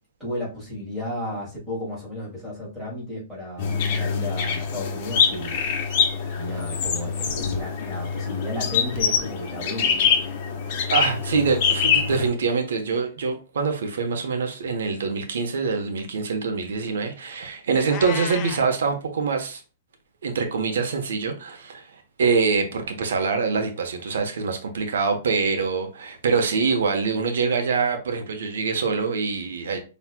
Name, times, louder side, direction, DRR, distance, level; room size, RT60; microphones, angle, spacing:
voice 1, 0.2-5.6 6.3-10.1 25.5-25.6, left 1 dB, ahead, 2.2 m, -33 dB
sound 1, 3.6-12.3, left 7 dB, 40° left, 1.2 m, -24 dB
voice 2, 10.9-19.6 20.2-21.9 22.2-29.8, right 5 dB, 85° right, 1.0 m, -24 dB
Meow, 17.8-18.7, left 8 dB, 25° left, 0.5 m, -33 dB
5.9 x 3.1 x 2.2 m
hypercardioid pair, 165°, 0 cm